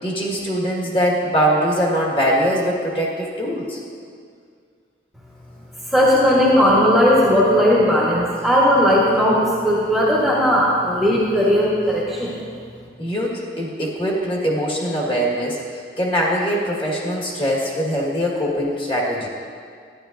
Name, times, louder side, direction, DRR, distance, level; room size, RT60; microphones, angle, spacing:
voice 1, 0.0-3.8 13.0-19.3, equal, 30° left, -4 dB, 1.6 m, -22 dB
voice 2, 5.9-12.4, equal, ahead, -7 dB, 1.2 m, -17 dB
12.0 x 10.5 x 2.6 m, 2.2 s
head